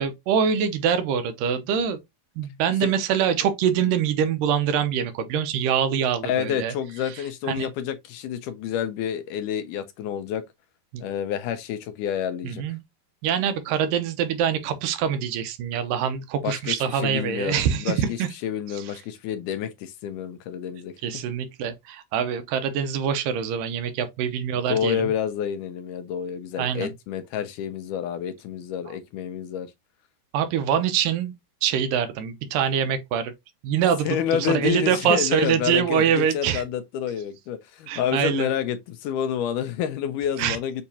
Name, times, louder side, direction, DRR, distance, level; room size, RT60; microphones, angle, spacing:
voice 1, 0.0-2.0 2.4-6.7 7.5-7.7 10.9-11.0 12.4-12.8 13.2-18.3 18.8-18.9 21.0-25.1 26.6-26.9 30.3-31.3 31.6-33.3 33.6-36.6 37.9-38.5 40.4-40.6, right 8 dB, 80° right, 2.3 m, -24 dB
voice 2, 6.2-10.4 11.0-12.6 16.4-20.9 24.7-29.7 34.1-40.8, left 9 dB, 80° left, 2.0 m, -29 dB
6.9 x 2.8 x 2.7 m
omnidirectional pair, 3.9 m